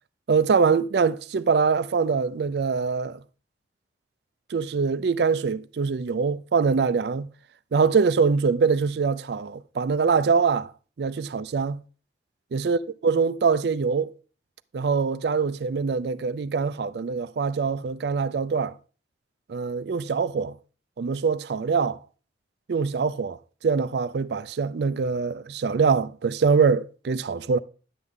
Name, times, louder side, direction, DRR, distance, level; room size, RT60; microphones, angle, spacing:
voice 1, 0.3-3.2 4.5-7.3 7.7-10.7 11.0-11.8 12.5-14.1 14.7-18.8 19.5-20.5 21.0-22.0 22.7-27.6, right 5 dB, 65° right, 0.4 m, -24 dB
10.5 x 8.0 x 3.6 m
head